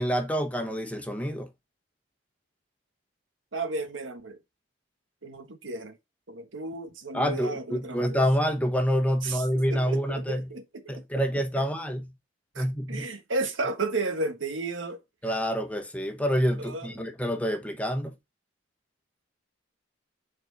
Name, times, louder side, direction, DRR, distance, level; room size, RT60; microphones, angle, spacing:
voice 1, 0.0-1.5 7.1-10.5 10.9-12.1 12.6-13.1 15.2-18.1, equal, 5° left, 1.0 m, -27 dB
voice 2, 3.5-4.4 5.2-6.0 6.3-8.2 9.2-10.0 10.3-10.8 12.5-15.0 16.6-16.9, right 3 dB, 85° right, 1.4 m, -33 dB
7.7 x 4.4 x 4.1 m
head